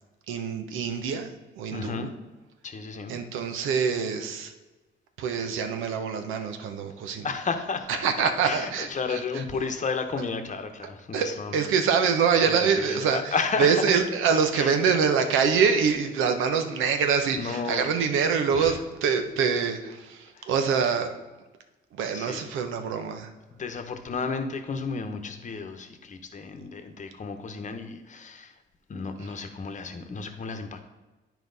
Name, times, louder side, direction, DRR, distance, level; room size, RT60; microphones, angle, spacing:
voice 1, 0.3-1.3 1.6-2.1 3.1-4.5 5.2-7.3 7.9-9.7 11.1-13.3 13.6-21.1 21.9-23.3 29.2-29.3, right 6 dB, 90° right, 7 dB, 0.9 m, -25 dB
voice 2, 1.7-2.1 2.6-3.2 7.2-7.9 8.4-11.6 12.4-13.8 14.5-14.7 17.3-17.9 18.5-18.8 20.3-20.5 22.1-22.4 23.5-28.6 28.9-30.8, left 4 dB, 40° left, 7 dB, 1.0 m, -32 dB
9.9 x 4.6 x 4.0 m, 1.1 s
cardioid pair, 90°, 20 cm